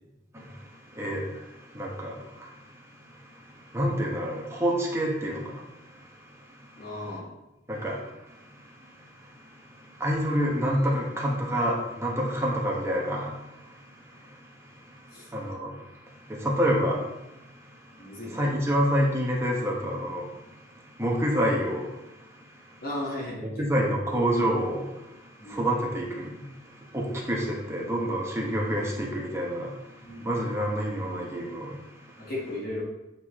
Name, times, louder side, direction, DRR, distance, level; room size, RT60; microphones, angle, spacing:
voice 1, 0.3-7.2 7.7-22.8 23.4-32.3, equal, 15° right, -2 dB, 1.2 m, -29 dB
voice 2, 6.8-7.3 15.1-15.2 18.0-18.3 22.8-23.9 25.4-25.6 30.1-30.3 32.2-32.8, left 1 dB, 55° left, -4 dB, 1.4 m, -35 dB
8.2 x 4.0 x 3.0 m, 0.93 s
head